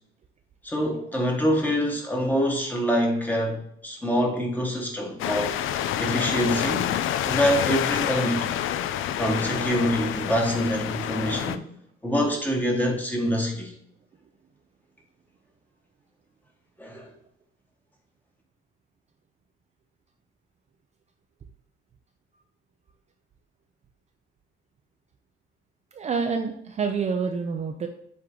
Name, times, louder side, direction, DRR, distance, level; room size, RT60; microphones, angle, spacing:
voice 1, 0.6-5.5 6.0-7.0 7.2-8.5 9.2-11.7 12.0-13.7 16.8-17.1, equal, 10° left, 0 dB, 1.4 m, -25 dB
sound 1, 5.2-11.6, left 11 dB, 75° left, 0.4 m, -28 dB
voice 2, 25.9-27.9, right 5 dB, 30° right, 4 dB, 0.5 m, -27 dB
7.6 x 3.5 x 3.7 m, 0.72 s
cardioid pair, 125°, 21 cm